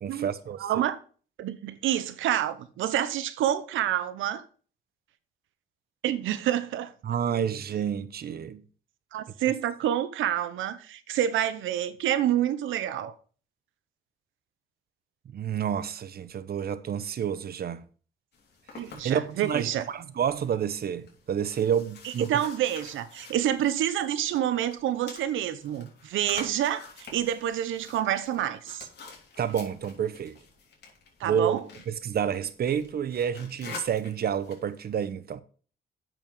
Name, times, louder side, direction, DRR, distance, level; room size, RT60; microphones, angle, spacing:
voice 1, 0.0-0.8 7.0-8.6 15.3-17.8 19.0-22.3 29.4-30.4 31.2-31.6 31.9-35.4, right 8 dB, 50° right, 0.9 m, -29 dB
voice 2, 0.6-1.0 1.4-4.4 6.0-6.9 9.1-13.1 18.7-19.8 22.0-28.9 31.2-31.6, right 11 dB, 80° right, 0.9 m, -28 dB
sound 1, 18.3-34.8, left 4 dB, 55° left, 3.4 m, -48 dB
8.9 x 6.2 x 5.4 m
cardioid pair, 90°, 20 cm